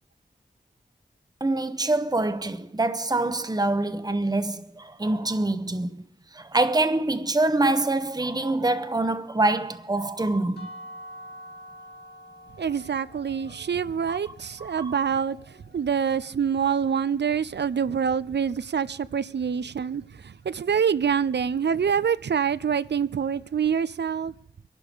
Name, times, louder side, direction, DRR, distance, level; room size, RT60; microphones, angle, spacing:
voice 1, 1.4-5.9 6.3-10.7 14.1-14.3 14.6-15.0, right 2 dB, 20° right, 0.9 m, -25 dB
sound 1, 10.6-16.4, equal, 65° left, 3.0 m, -47 dB
voice 2, 12.6-24.3, right 7 dB, 75° right, 0.5 m, -26 dB
22.0 x 11.5 x 5.0 m
wide cardioid pair, 55°, 18 cm